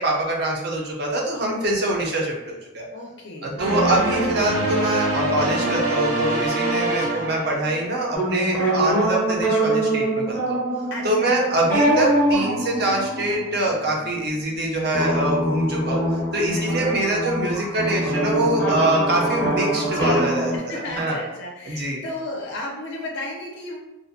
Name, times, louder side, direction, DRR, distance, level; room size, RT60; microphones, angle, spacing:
voice 1, 0.0-2.9 3.4-10.6 11.0-16.0 16.3-21.2 21.7-22.0, right 1 dB, 50° right, -1 dB, 0.5 m, -24 dB
voice 2, 2.9-3.9 6.8-7.3 8.5-8.8 10.9-11.5 12.7-13.0 16.5-17.0 19.9-23.8, left 2 dB, 55° left, -1 dB, 0.4 m, -34 dB
sound 1, 3.6-8.1, right 2 dB, 70° right, 0.9 m, -24 dB
sound 2, 8.1-14.1 14.9-20.6, right 1 dB, 10° left, 0.6 m, -24 dB
2.5 x 2.0 x 2.5 m, 0.98 s
head